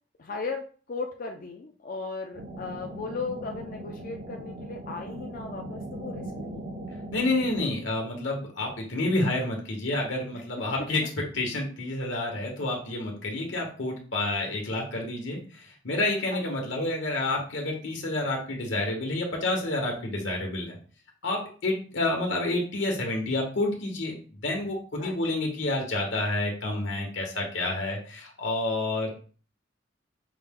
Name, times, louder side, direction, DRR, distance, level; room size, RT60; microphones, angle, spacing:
voice 1, 0.2-6.7 10.3-10.4 10.8-10.9 16.3-16.4 25.0-25.1, left 4 dB, 45° left, 3 dB, 0.5 m, -36 dB
sound 1, 2.3-7.7, right 1 dB, 50° right, 0.7 m, -39 dB
voice 2, 7.1-11.0 11.3-20.8 21.2-24.1 24.4-29.1, left 2 dB, 75° left, 0 dB, 1.2 m, -29 dB
5.6 x 2.2 x 3.6 m, 0.40 s
head